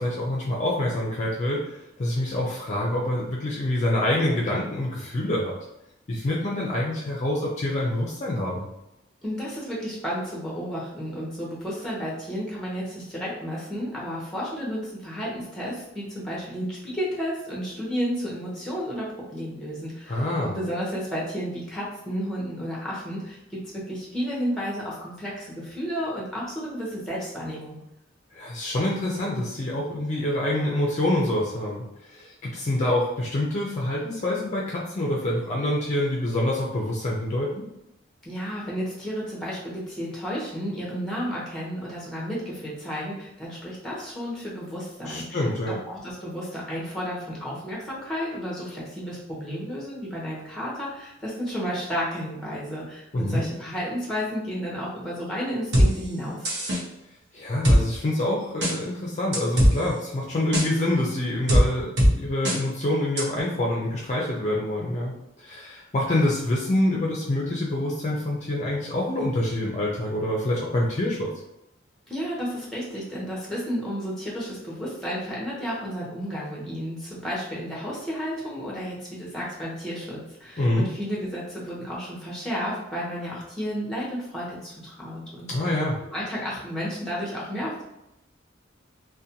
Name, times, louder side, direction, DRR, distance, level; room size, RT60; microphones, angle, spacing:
voice 1, 0.0-5.5 6.1-8.7 20.1-20.5 28.3-37.7 45.1-45.7 53.1-53.4 57.3-71.3 80.6-80.9 85.5-86.0, left 1 dB, 35° left, -4 dB, 0.4 m, -26 dB
voice 2, 9.2-27.8 38.2-45.4 45.7-56.5 72.1-85.8 86.1-87.8, equal, 5° left, -5 dB, 0.8 m, -32 dB
sound 1, 55.7-55.9 56.4-56.8 57.6-57.8 58.6-58.7 59.3-59.7 60.5-60.7 61.5-61.6 62.0-62.1 62.4-62.6 63.2-63.3, equal, 60° right, 0.7 m, -18 dB
2.5 x 2.1 x 2.7 m, 0.87 s
head